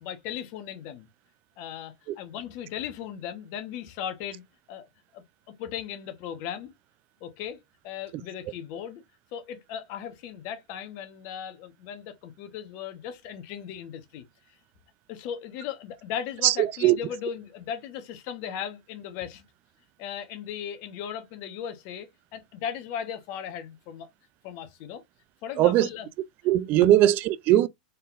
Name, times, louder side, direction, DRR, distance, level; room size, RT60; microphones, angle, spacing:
voice 1, 0.0-1.1 1.6-4.9 5.1-6.7 7.2-7.6 7.8-9.0 9.3-14.2 15.1-19.4 20.0-24.1 24.4-25.0 25.4-26.1 26.8-26.9, left 9 dB, 55° left, 1.2 m, -37 dB
voice 2, 16.4-17.0 25.6-25.9 26.5-27.7, right 13 dB, 45° right, 0.5 m, -20 dB
4.2 x 3.7 x 2.5 m
hypercardioid pair, 100°, 4 cm